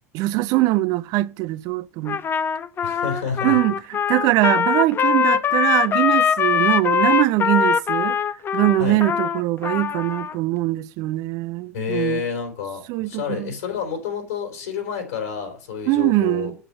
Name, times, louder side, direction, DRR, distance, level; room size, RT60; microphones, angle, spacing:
voice 1, 0.1-2.2 3.4-3.8 4.1-8.2 8.5-12.2 12.9-13.5 15.9-16.5, right 18 dB, 50° right, 0.6 m, -22 dB
Trumpet, 2.1-10.4, left 7 dB, 25° left, 0.7 m, -22 dB
voice 2, 2.8-3.6 8.8-9.0 11.7-16.5, left 6 dB, 65° left, 3.5 m, -29 dB
8.1 x 7.7 x 5.9 m
figure-of-eight pair, 75°, 8 cm